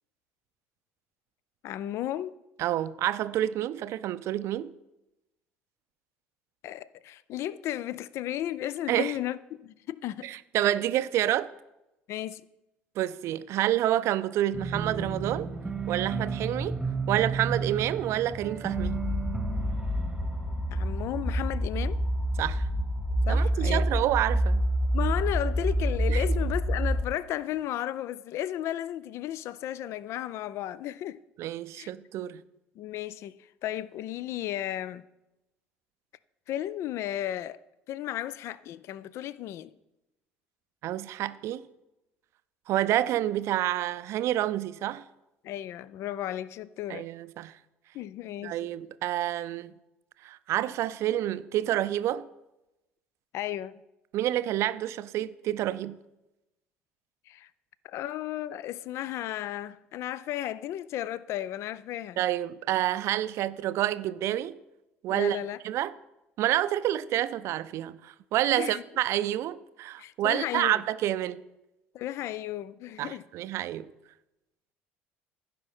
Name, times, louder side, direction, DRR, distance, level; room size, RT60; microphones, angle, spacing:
voice 1, 1.6-2.4 6.6-10.4 12.1-12.4 20.7-22.0 23.3-23.9 24.9-31.2 31.7-31.9 32.8-35.0 36.5-37.6 37.9-39.7 45.4-47.1 47.9-48.7 53.3-53.8 57.3-57.5 57.8-62.2 65.1-65.6 68.6-68.8 70.0-70.8 71.9-73.2, left 12 dB, 50° left, 0.4 m, -34 dB
voice 2, 2.6-4.7 8.9-9.1 10.2-11.5 13.0-15.5 15.9-16.8 17.1-19.0 22.4-22.6 23.3-24.6 26.1-26.2 31.4-32.4 40.8-41.6 42.7-45.0 46.9-47.5 48.4-49.7 50.2-52.3 54.1-56.0 62.2-64.5 65.0-65.4 65.6-65.9 66.4-71.4 73.0-73.9, right 13 dB, 50° right, 0.5 m, -28 dB
sound 1, 14.5-21.4, right 5 dB, 10° right, 1.1 m, -34 dB
sound 2, 18.7-27.1, equal, 15° left, 1.5 m, -27 dB
15.5 x 5.2 x 4.2 m
figure-of-eight pair, 60°, 6 cm